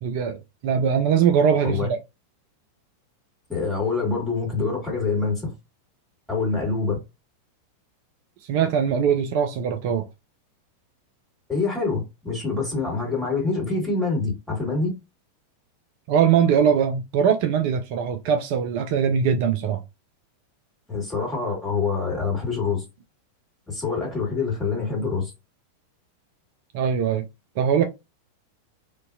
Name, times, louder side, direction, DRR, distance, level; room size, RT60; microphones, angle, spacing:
voice 1, 0.0-1.8 8.4-10.1 16.1-19.8 26.7-27.2 27.6-27.8, right 7 dB, 45° right, 0.3 m, -21 dB
voice 2, 3.5-5.5 6.3-7.0 11.5-14.9 20.9-22.8 23.7-25.3, left 4 dB, 10° left, 1.5 m, -25 dB
2.6 x 2.1 x 2.4 m
figure-of-eight pair, 90°, 0 cm